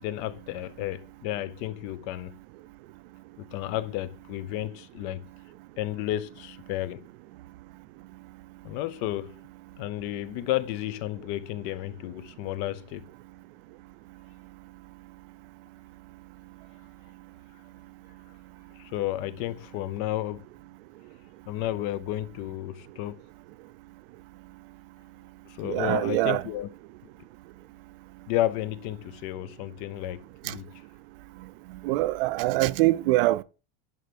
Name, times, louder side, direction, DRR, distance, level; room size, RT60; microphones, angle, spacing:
voice 1, 0.0-2.4 3.4-5.3 5.8-7.1 8.6-9.4 9.8-13.1 18.8-20.5 21.5-23.2 25.5-26.7 28.3-30.7, left 14 dB, 40° left, 0.5 m, -32 dB
voice 2, 25.6-26.4 30.4-30.5 31.8-33.4, right 18 dB, 60° right, 0.5 m, -24 dB
10.5 x 4.5 x 5.1 m
supercardioid pair, 170°, 32 cm